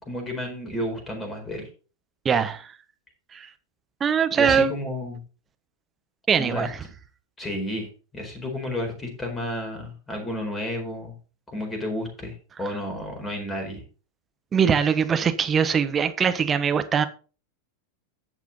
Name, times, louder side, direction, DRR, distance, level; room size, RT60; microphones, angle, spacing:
voice 1, 0.0-1.7 4.4-5.2 6.3-6.7 7.4-11.2 11.5-13.8, left 1 dB, 10° left, 4.4 m, -31 dB
voice 2, 2.2-2.7 3.3-3.5 4.0-4.7 6.3-6.8 14.5-17.0, right 7 dB, 20° right, 1.1 m, -22 dB
10.5 x 7.4 x 4.0 m
figure-of-eight pair, 90°, 0 cm